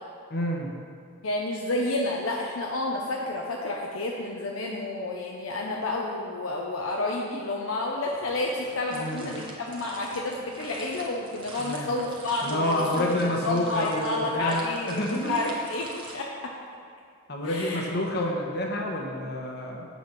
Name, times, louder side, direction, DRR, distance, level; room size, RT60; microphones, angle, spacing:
voice 1, 0.3-0.7 8.9-9.3 11.6-11.9 12.4-15.5 17.3-19.9, left 1 dB, 50° left, 0 dB, 1.2 m, -28 dB
voice 2, 1.2-13.1 13.4-16.5 17.4-17.9, left 2 dB, 70° left, -1 dB, 0.7 m, -30 dB
sound 1, 8.1-16.1, right 2 dB, 25° right, 1.1 m, -45 dB
7.9 x 6.2 x 5.8 m, 2.3 s
head